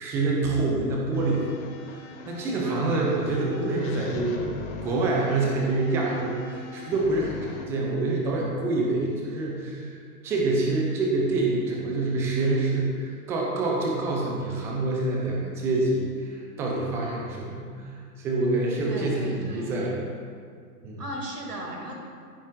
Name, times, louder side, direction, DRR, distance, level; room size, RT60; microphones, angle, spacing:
voice 1, 0.0-1.5 1.8-10.0 10.2-17.9 18.2-20.0 20.8-21.0, right 2 dB, 5° right, -2 dB, 0.3 m, -26 dB
sound 1, 1.1-7.6, left 4 dB, 35° left, 1.2 m, -39 dB
voice 2, 2.6-3.4 18.8-19.8 21.0-22.0, right 1 dB, 80° right, 0 dB, 2.5 m, -37 dB
15.0 x 9.2 x 2.5 m, 2.2 s
figure-of-eight pair, 110°, 47 cm